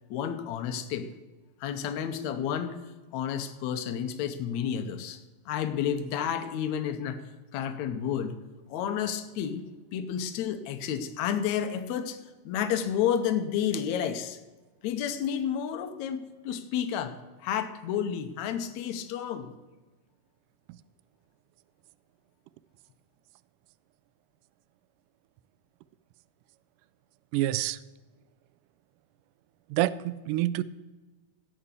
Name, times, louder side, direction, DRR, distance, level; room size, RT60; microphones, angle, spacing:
voice 1, 0.1-1.1 1.6-2.8 3.1-5.2 5.5-7.2 7.5-8.4 8.7-12.2 12.4-14.4 14.8-19.5, left 8 dB, 80° left, 8 dB, 1.6 m, -31 dB
voice 2, 27.3-27.8 29.7-30.6, right 15 dB, 90° right, 17 dB, 1.8 m, -27 dB
16.5 x 5.8 x 8.2 m, 1.2 s
omnidirectional pair, 4.3 m